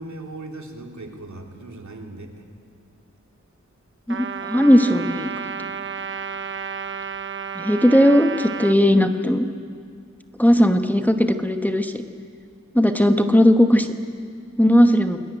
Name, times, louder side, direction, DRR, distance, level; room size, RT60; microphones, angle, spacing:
voice 1, 0.0-2.4, right 2 dB, 75° right, 1 dB, 2.9 m, -38 dB
voice 2, 4.1-5.3 7.5-9.5 10.4-12.0 12.7-13.9 14.6-15.2, equal, 5° left, 6 dB, 1.2 m, -17 dB
Trumpet, 4.1-8.8, right 7 dB, 45° right, 0.8 m, -32 dB
22.0 x 22.0 x 9.0 m, 2.2 s
wide cardioid pair, 90°, 29 cm